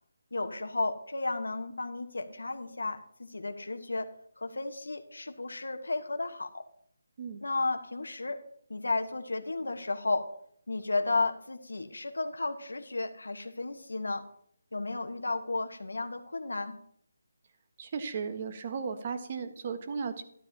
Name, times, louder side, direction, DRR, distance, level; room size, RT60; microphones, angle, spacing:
voice 1, 0.3-4.1 4.4-6.6 7.4-8.4 8.7-10.3 10.7-14.2 14.7-16.8, left 3 dB, 85° left, 7 dB, 1.3 m, -33 dB
voice 2, 17.8-20.2, right 5 dB, 35° right, 8 dB, 1.4 m, -35 dB
12.5 x 12.0 x 2.9 m, 0.68 s
figure-of-eight pair, 160°, 0 cm